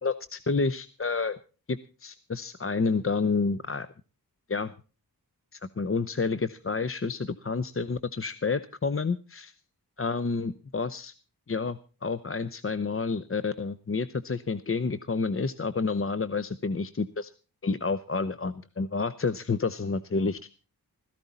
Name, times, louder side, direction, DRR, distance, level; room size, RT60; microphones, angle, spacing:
voice 1, 0.0-1.4 1.7-3.9 4.5-4.7 5.5-9.5 10.0-11.1 11.5-17.3 17.6-20.4, left 4 dB, 35° left, 14 dB, 0.7 m, -29 dB
16.0 x 14.5 x 4.1 m, 0.35 s
wide cardioid pair, 65°, 37 cm